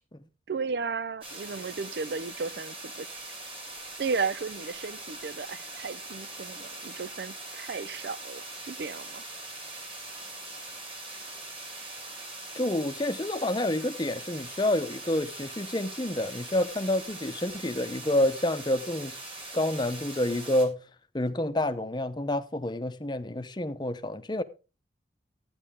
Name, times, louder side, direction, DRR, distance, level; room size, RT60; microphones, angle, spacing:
voice 1, 0.5-3.1 4.0-9.2, right 5 dB, 60° right, 0.5 m, -34 dB
sound 1, 1.2-20.7, right 2 dB, 30° right, 3.2 m, -42 dB
voice 2, 12.5-19.1 19.5-20.8 21.1-24.4, left 1 dB, 25° left, 0.8 m, -28 dB
12.0 x 9.7 x 3.6 m
head